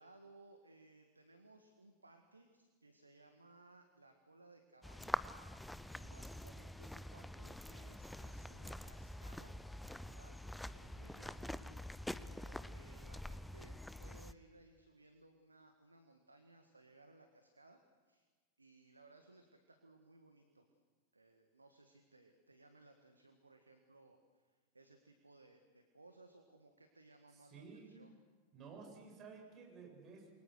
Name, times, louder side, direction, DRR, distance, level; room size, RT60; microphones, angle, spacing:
voice 1, 0.0-5.2 5.5-10.4 10.7-17.8 18.1-18.3 18.6-20.8 21.1-28.2, right 2 dB, 80° right, 6 dB, 1.7 m, -63 dB
sound 1, 4.8-14.3, left 1 dB, 5° left, 0.7 m, -46 dB
voice 2, 27.3-27.9 28.5-30.3, right 5 dB, 30° right, 1 dB, 7.9 m, -54 dB
28.5 x 23.5 x 6.6 m, 1.4 s
figure-of-eight pair, 90°, 0 cm